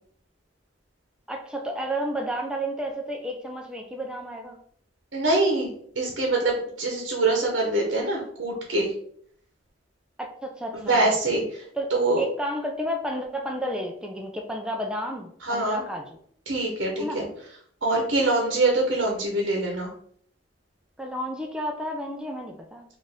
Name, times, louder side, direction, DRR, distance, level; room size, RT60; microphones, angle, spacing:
voice 1, 1.3-4.6 10.2-11.1 11.7-11.9 12.2-16.1 17.0-17.2 21.0-22.8, equal, 5° right, 1 dB, 0.3 m, -31 dB
voice 2, 5.1-5.7 6.0-8.9 10.7-11.6 11.9-12.2 15.4-15.8 16.5-17.3 17.8-19.9, right 2 dB, 70° right, -1 dB, 0.9 m, -24 dB
4.0 x 2.5 x 3.4 m, 0.62 s
head